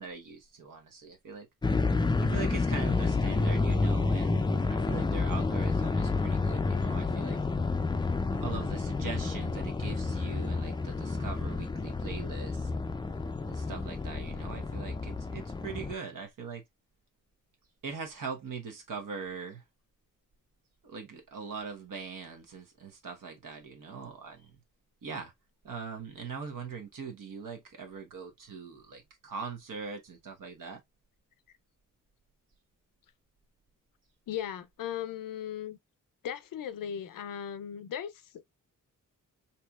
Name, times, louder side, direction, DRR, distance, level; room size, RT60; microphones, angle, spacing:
voice 1, 0.0-1.5 2.2-7.4 8.3-12.9 13.5-16.6 17.8-19.6 20.8-24.6 25.0-25.3 25.6-30.8, right 5 dB, 75° right, 1.2 m, -41 dB
sound 1, 1.6-15.9, left 3 dB, 15° left, 0.3 m, -30 dB
voice 2, 34.3-35.8 36.2-38.5, left 9 dB, 85° left, 0.5 m, -37 dB
4.4 x 2.8 x 2.3 m
cardioid pair, 90°, 32 cm